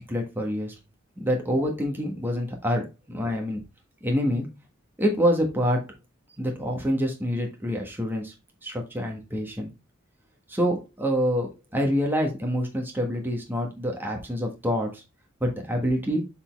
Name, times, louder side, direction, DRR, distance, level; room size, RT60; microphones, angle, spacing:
voice 1, 0.1-0.7 1.2-3.6 4.0-4.5 5.0-5.9 6.4-8.3 8.6-9.7 10.5-15.0 15.4-16.2, equal, 10° right, 1 dB, 1.4 m, -26 dB
6.9 x 4.2 x 3.4 m, 0.25 s
head